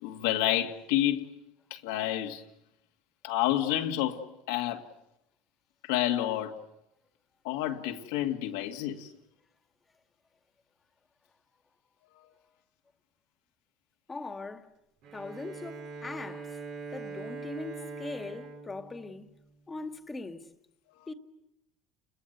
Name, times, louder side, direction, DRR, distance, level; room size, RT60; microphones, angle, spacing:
voice 1, 0.0-1.3 1.7-2.4 3.2-4.2 4.5-4.9 5.8-6.6 7.4-9.1 12.2-12.3, left 13 dB, 90° left, 2.2 m, -29 dB
voice 2, 14.1-14.7 15.1-16.6 16.9-19.3 19.7-20.5 21.1-21.2, left 3 dB, 20° left, 2.1 m, -40 dB
Bowed string instrument, 15.0-19.8, right 4 dB, 70° right, 6.8 m, -43 dB
30.0 x 21.5 x 8.1 m
supercardioid pair, 105°, 0 cm